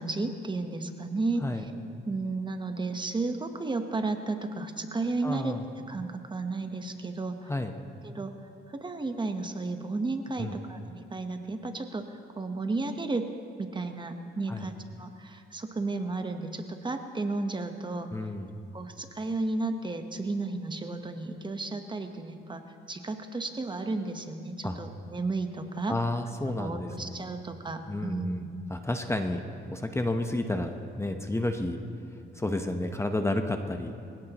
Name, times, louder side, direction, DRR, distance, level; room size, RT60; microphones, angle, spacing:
voice 1, 0.0-1.7 2.0-5.6 5.9-7.5 8.0-8.3 8.7-13.3 13.6-18.3 18.7-26.0 26.5-28.5, right 3 dB, 25° right, 6 dB, 1.1 m, -33 dB
voice 2, 5.2-5.6 7.5-7.7 10.4-10.6 14.5-14.7 18.1-18.6 24.6-24.8 25.9-27.3 27.9-29.4 29.7-31.8 32.3-33.9, left 1 dB, 15° left, 5 dB, 0.9 m, -31 dB
24.0 x 17.0 x 3.0 m, 2.4 s
cardioid pair, 90°, 20 cm